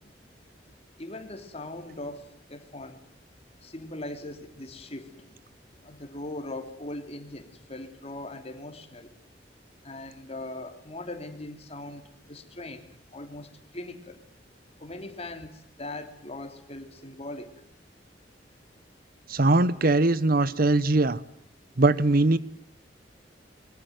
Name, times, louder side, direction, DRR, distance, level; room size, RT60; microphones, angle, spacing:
voice 1, 1.0-3.0 3.6-5.3 5.8-9.1 9.8-12.0 12.3-12.9 13.1-14.2 14.8-17.5, left 2 dB, 35° left, 7 dB, 3.0 m, -40 dB
voice 2, 19.3-21.2 21.8-22.4, right 2 dB, 55° right, 18 dB, 0.9 m, -21 dB
23.5 x 22.5 x 9.4 m, 0.73 s
head